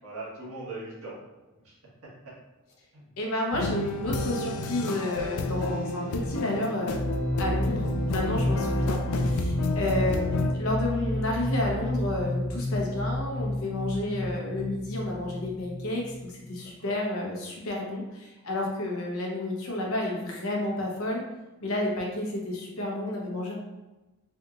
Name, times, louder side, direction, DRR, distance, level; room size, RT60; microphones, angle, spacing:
voice 1, 0.0-1.2 1.6-1.7 2.9-3.1 7.6-7.7 9.4-9.7 16.6-17.0, right 2 dB, 80° right, -7 dB, 1.4 m, -41 dB
voice 2, 3.2-7.0 7.4-21.2 21.6-23.5, left 1 dB, 70° left, -2 dB, 0.8 m, -31 dB
sound 1, 3.5-10.5, left 3 dB, 85° left, 0.3 m, -31 dB
sound 2, 6.9-16.5, left 1 dB, 55° right, 0.9 m, -30 dB
3.4 x 2.8 x 2.4 m, 1.1 s
head